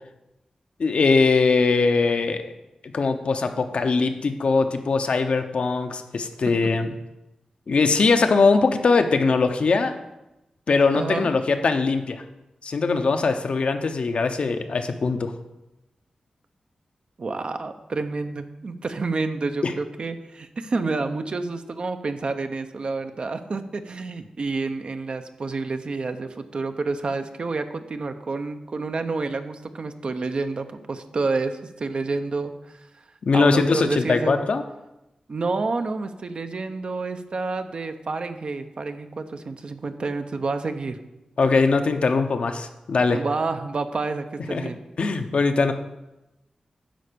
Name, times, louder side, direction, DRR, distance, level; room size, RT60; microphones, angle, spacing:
voice 1, 0.8-2.5 2.9-6.9 7.7-9.9 10.7-12.2 12.6-15.3 19.6-19.7 33.2-34.6 41.4-43.2 44.5-44.7 45.0-45.7, left 4 dB, 70° left, 7 dB, 0.8 m, -21 dB
voice 2, 11.0-11.3 17.2-32.9 33.3-34.4 35.3-41.0 43.1-44.8, right 3 dB, 55° right, 8 dB, 0.7 m, -29 dB
10.5 x 4.5 x 6.8 m, 0.95 s
wide cardioid pair, 100°, 2 cm